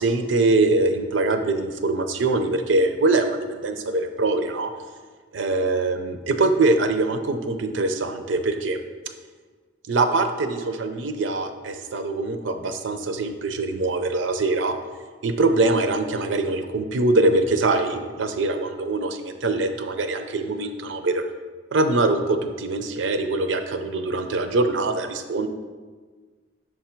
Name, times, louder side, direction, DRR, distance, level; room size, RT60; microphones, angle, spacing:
voice 1, 0.0-4.7 5.3-8.8 9.9-14.8 15.2-21.2 21.7-25.5, right 2 dB, 90° right, 7 dB, 0.5 m, -23 dB
6.2 x 3.4 x 4.4 m, 1.4 s
head